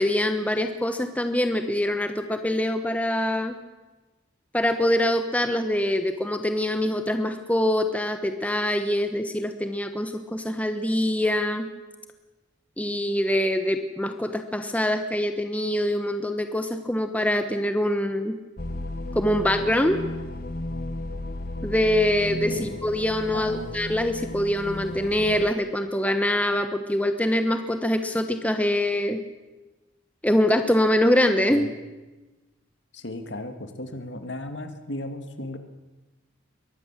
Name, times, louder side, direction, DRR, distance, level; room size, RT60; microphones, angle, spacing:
voice 1, 0.0-3.5 4.5-11.7 12.8-18.4 19.1-20.0 21.6-29.2 30.2-31.6, left 1 dB, 5° left, 7 dB, 1.1 m, -24 dB
sound 1, 18.6-25.5, left 1 dB, 45° left, 1.2 m, -34 dB
voice 2, 23.3-23.7 31.5-31.7 32.9-35.6, left 1 dB, 65° left, 8 dB, 2.2 m, -35 dB
23.0 x 19.0 x 7.5 m, 1.2 s
head